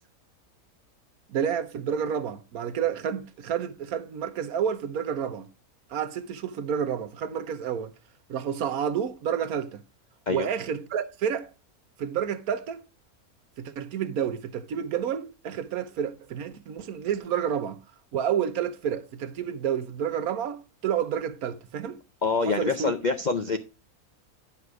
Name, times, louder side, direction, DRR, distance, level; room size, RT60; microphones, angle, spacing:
voice 1, 1.3-5.5 5.9-7.9 8.3-9.8 10.3-11.5 12.0-12.8 13.6-17.8 18.1-22.0 22.5-22.9, right 8 dB, 75° right, 1.3 m, -30 dB
voice 2, 22.2-23.6, left 4 dB, 55° left, 0.5 m, -26 dB
9.6 x 6.0 x 4.7 m
omnidirectional pair, 1.6 m